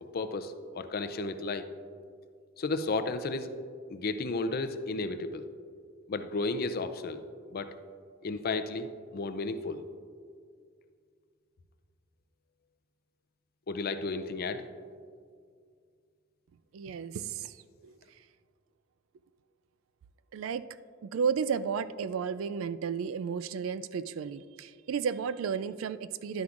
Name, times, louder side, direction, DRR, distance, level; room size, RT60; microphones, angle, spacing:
voice 1, 0.1-1.6 2.6-3.5 3.9-5.4 6.1-7.2 7.5-7.7 8.2-9.8 13.7-14.7, left 3 dB, 45° left, 10 dB, 0.5 m, -33 dB
voice 2, 16.7-17.5 17.8-17.9 20.3-20.7 21.0-26.4, right 6 dB, 70° right, 15 dB, 0.3 m, -33 dB
11.0 x 9.5 x 2.5 m, 2.1 s
head